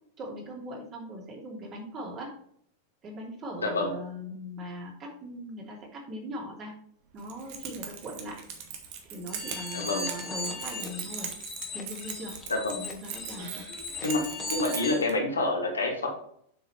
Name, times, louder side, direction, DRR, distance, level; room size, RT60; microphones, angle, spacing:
voice 1, 0.2-2.3 3.0-6.7 7.1-8.4 9.1-11.3 11.7-12.3 12.7-13.6, equal, 30° right, -1 dB, 2.8 m, -40 dB
voice 2, 3.6-3.9 9.7-10.1 12.5-12.8 14.0-14.2 14.5-16.1, left 2 dB, 75° left, 0 dB, 2.2 m, -27 dB
Keys jangling, 7.2-15.1, right 7 dB, 45° right, 1.5 m, -40 dB
sound 1, 9.3-15.1, left 3 dB, 20° left, 1.7 m, -38 dB
7.9 x 6.5 x 3.3 m, 0.67 s
figure-of-eight pair, 90°, 0 cm